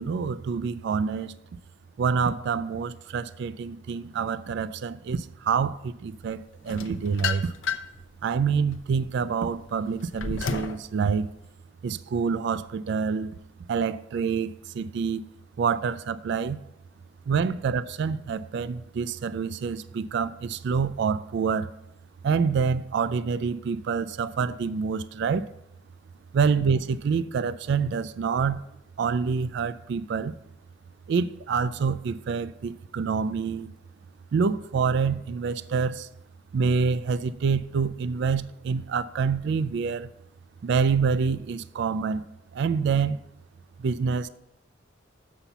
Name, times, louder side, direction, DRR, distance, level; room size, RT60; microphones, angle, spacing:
voice 1, 0.0-1.3 2.0-7.5 8.2-11.3 11.8-13.4 13.7-15.2 15.6-16.6 17.3-21.7 22.2-25.5 26.3-28.6 29.0-30.3 31.1-33.7 34.3-36.1 36.5-40.1 40.6-42.3 42.5-43.2 43.8-44.3, right 5 dB, 60° right, 0.3 m, -27 dB
sound 1, 6.7-8.0 8.6-10.8, left 5 dB, 75° left, 0.7 m, -32 dB
7.0 x 5.7 x 6.8 m
head